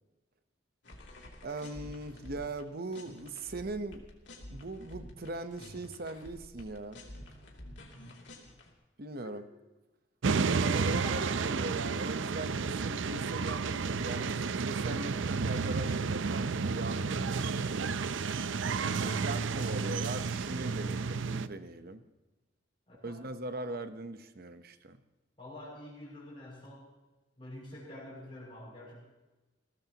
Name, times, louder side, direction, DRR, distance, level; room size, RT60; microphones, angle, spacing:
sound 1, 0.8-2.6 2.9-8.7, left 1 dB, 60° left, 3.0 m, -49 dB
voice 1, 1.4-4.0 4.5-7.0 9.0-9.4 10.6-18.1 19.2-22.0 23.0-25.0, right 2 dB, 50° right, 10 dB, 1.0 m, -40 dB
sound 2, 10.2-21.5, right 5 dB, 75° right, 0.6 m, -31 dB
voice 2, 18.7-20.0 22.9-23.2 25.4-26.8 27.4-29.0, left 1 dB, 30° left, -4 dB, 6.3 m, -48 dB
21.5 x 18.0 x 3.0 m, 1.1 s
head